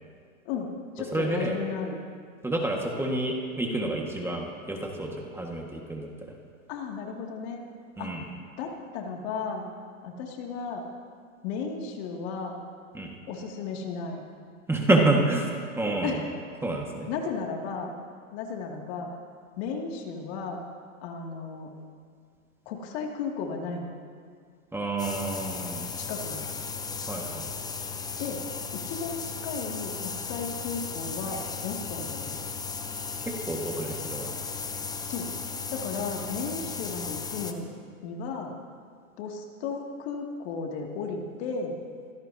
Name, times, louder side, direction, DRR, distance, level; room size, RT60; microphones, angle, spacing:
voice 1, 0.5-2.0 6.7-7.6 8.0-8.1 8.6-9.7 10.0-10.8 11.4-12.6 13.3-14.2 16.0-16.2 17.1-17.9 18.3-19.1 19.6-20.6 21.0-21.7 22.7-23.9 26.1-26.5 28.2-28.4 28.7-32.4 35.1-35.3 35.7-37.7 38.0-38.5 39.2-41.8, left 5 dB, 50° left, 0 dB, 2.5 m, -34 dB
voice 2, 1.1-1.6 2.4-6.3 8.0-8.3 12.9-13.2 14.7-16.2 16.6-17.1 24.7-25.9 27.1-27.5 33.2-34.3, right 2 dB, 5° right, 0 dB, 1.7 m, -28 dB
sound 1, 25.0-37.5, left 5 dB, 10° left, 0.7 m, -36 dB
25.0 x 16.5 x 2.8 m, 2.1 s
hypercardioid pair, 120°, 41 cm